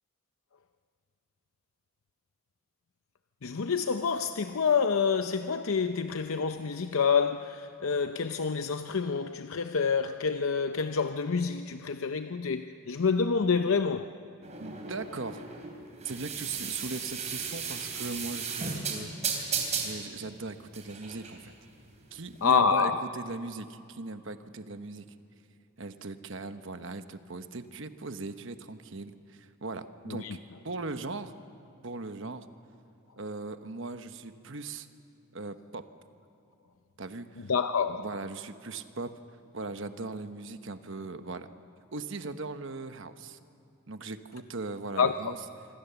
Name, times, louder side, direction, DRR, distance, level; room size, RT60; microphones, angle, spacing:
voice 1, 3.4-14.1 22.4-23.0 30.1-30.4 37.5-38.0 45.0-45.3, left 5 dB, 70° left, 0.6 m, -27 dB
sound 1, 14.4-22.4, right 6 dB, 30° right, 3.4 m, -35 dB
voice 2, 14.6-15.4 16.0-21.5 22.1-25.0 25.8-30.4 30.6-31.3 31.8-32.5 33.2-34.9 35.3-35.9 37.0-37.5 38.0-39.1 39.5-41.5 41.9-43.4 43.9-45.4, right 3 dB, 55° right, 1.1 m, -39 dB
26.0 x 25.0 x 7.0 m
head